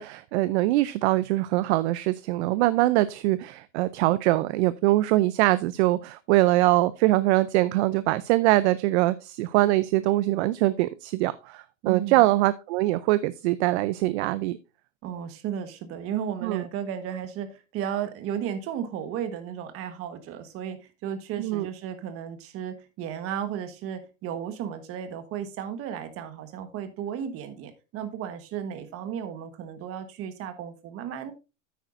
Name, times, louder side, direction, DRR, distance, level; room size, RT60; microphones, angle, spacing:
voice 1, 0.0-14.6 16.4-16.6 21.4-21.7, right 17 dB, 55° right, 16 dB, 0.5 m, -23 dB
voice 2, 11.8-12.2 15.0-31.3, right 9 dB, 35° right, 11 dB, 1.3 m, -34 dB
9.3 x 9.0 x 2.5 m, 0.28 s
supercardioid pair, 150°, 39 cm